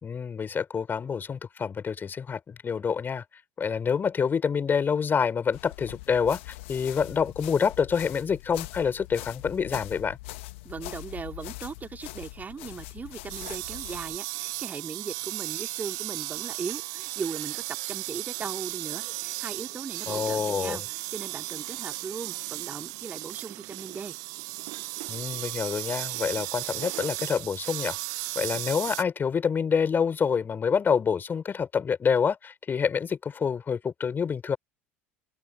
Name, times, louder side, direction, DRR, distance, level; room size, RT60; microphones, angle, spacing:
voice 1, 0.0-3.2 3.6-10.2 20.1-20.8 25.1-28.0 28.4-34.6, left 6 dB, 25° left, 4.2 m, -27 dB
sound 1, 5.5-14.2, left 21 dB, 60° left, 1.6 m, -42 dB
voice 2, 10.6-24.1, right 5 dB, 25° right, 2.5 m, -38 dB
sound 2, 13.3-29.0, right 25 dB, 55° right, 0.8 m, -35 dB
figure-of-eight pair, 70°, 7 cm